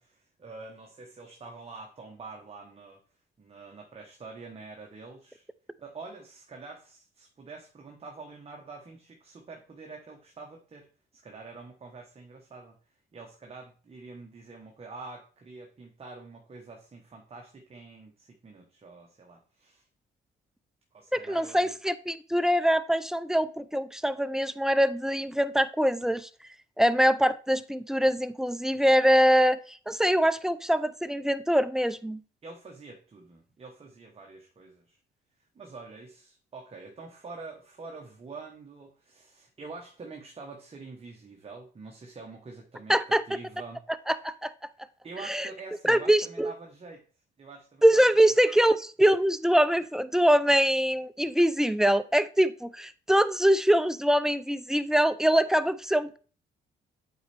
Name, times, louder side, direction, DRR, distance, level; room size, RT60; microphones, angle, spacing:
voice 1, 0.0-3.0 3.4-5.5 5.8-10.9 11.1-12.8 13.1-19.9 20.9-21.8 32.4-35.0 35.5-43.8 45.0-47.0 47.4-48.3, right 3 dB, 30° right, 1 dB, 1.0 m, -46 dB
voice 2, 21.1-26.3 26.8-32.2 42.9-43.2 44.1-44.5 45.2-45.5 45.8-46.5 47.8-56.2, equal, ahead, 13 dB, 0.4 m, -23 dB
8.0 x 4.3 x 3.3 m, 0.39 s
cardioid pair, 90°, 20 cm